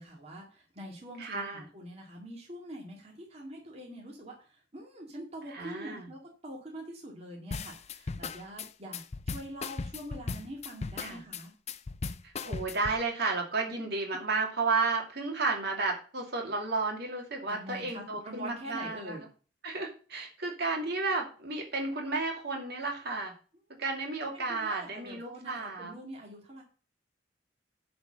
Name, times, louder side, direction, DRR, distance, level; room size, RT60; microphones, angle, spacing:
voice 1, 0.0-11.5 13.7-13.8 17.5-19.2 24.3-26.6, right 1 dB, 35° right, -1 dB, 2.2 m, -44 dB
voice 2, 1.2-1.6 5.5-6.1 11.0-11.2 12.4-19.2 19.6-23.3 23.8-25.9, right 3 dB, 60° right, 1 dB, 2.7 m, -32 dB
sound 1, 7.5-13.0, left 4 dB, 35° left, 0.5 m, -37 dB
10.0 x 4.4 x 6.5 m, 0.37 s
head